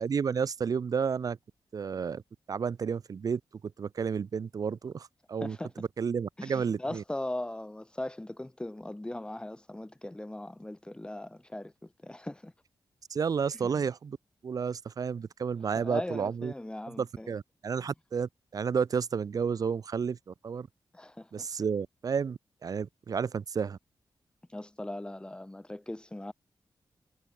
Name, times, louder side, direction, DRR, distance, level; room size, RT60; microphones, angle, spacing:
voice 1, 0.0-1.4 1.7-2.2 2.5-3.4 3.8-7.0 13.1-14.2 14.4-16.5 16.9-20.7 21.3-23.8, right 6 dB, 50° right, 0.6 m, -31 dB
voice 2, 6.4-12.5 15.7-17.3 20.9-21.5 24.5-26.3, left 1 dB, 10° left, 5.0 m, -39 dB
wide cardioid pair, 130°, 8 cm